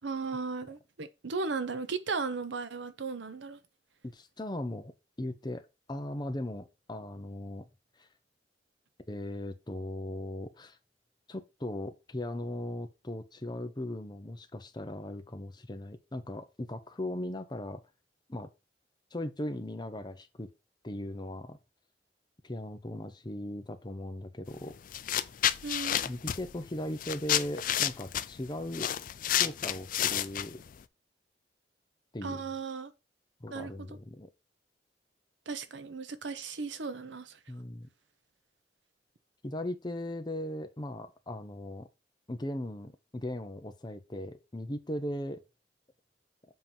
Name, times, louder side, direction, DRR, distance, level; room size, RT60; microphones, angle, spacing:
voice 1, 0.0-3.6 25.6-26.0 32.2-32.9 33.5-34.0 35.5-37.4, right 4 dB, 85° right, 0.8 m, -36 dB
voice 2, 4.0-7.7 8.0-8.1 9.1-10.8 11.3-17.8 18.3-18.5 19.1-20.5 20.8-21.6 22.4-24.7 26.1-28.9 29.4-30.6 32.1-32.4 33.4-34.3 37.5-37.9 39.4-41.9 42.3-45.4, left 1 dB, 25° left, 0.7 m, -38 dB
sound 1, 24.5-24.6 24.9-30.8, left 11 dB, 50° left, 0.4 m, -30 dB
7.5 x 2.9 x 5.5 m
head